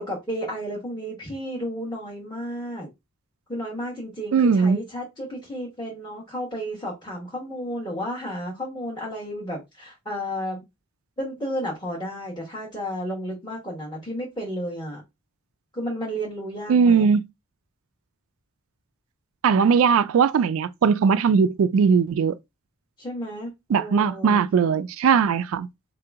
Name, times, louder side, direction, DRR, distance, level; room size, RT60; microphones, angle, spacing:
voice 1, 0.0-2.9 3.5-10.7 11.2-15.0 15.7-17.1 23.0-24.4, equal, 20° left, 1.1 m, -32 dB
voice 2, 4.3-4.8 16.7-17.2 19.4-22.4 23.7-25.7, right 6 dB, 70° right, 0.3 m, -19 dB
4.0 x 2.9 x 3.4 m
head